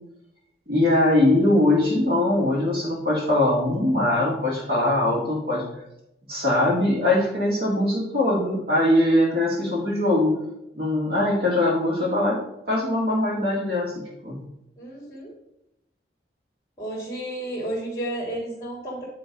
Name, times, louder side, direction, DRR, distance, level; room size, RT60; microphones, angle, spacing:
voice 1, 0.7-5.6 6.3-10.3 10.7-12.4 12.7-13.9 14.2-14.4, left 1 dB, 55° right, -7 dB, 2.4 m, -21 dB
voice 2, 14.8-15.3 16.8-19.0, right 1 dB, 15° left, -5 dB, 1.9 m, -32 dB
9.5 x 3.8 x 5.2 m, 0.83 s
head